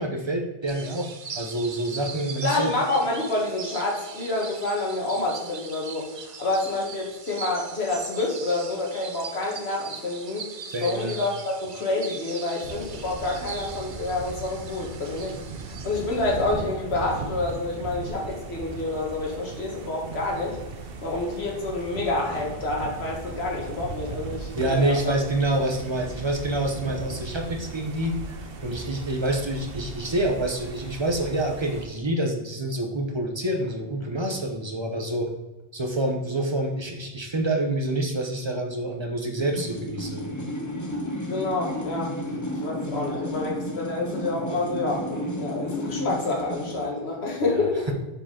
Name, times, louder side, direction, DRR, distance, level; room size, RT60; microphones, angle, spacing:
voice 1, 0.0-2.7 10.7-11.2 24.5-28.2 28.6-35.3 35.7-40.2 47.4-47.5 47.9-48.0, right 1 dB, 30° right, 3 dB, 0.9 m, -27 dB
sound 1, 0.7-16.6, right 5 dB, 45° right, 0.4 m, -40 dB
voice 2, 2.4-10.5 10.8-15.3 15.6-20.6 21.0-25.1 41.3-42.1 42.5-47.9, left 2 dB, 85° left, -2 dB, 1.6 m, -28 dB
sound 2, 12.6-31.9, right 3 dB, 65° right, 0.9 m, -38 dB
sound 3, 39.4-46.9, equal, 20° left, 0.8 m, -32 dB
6.9 x 4.9 x 3.7 m, 1.1 s
omnidirectional pair, 1.1 m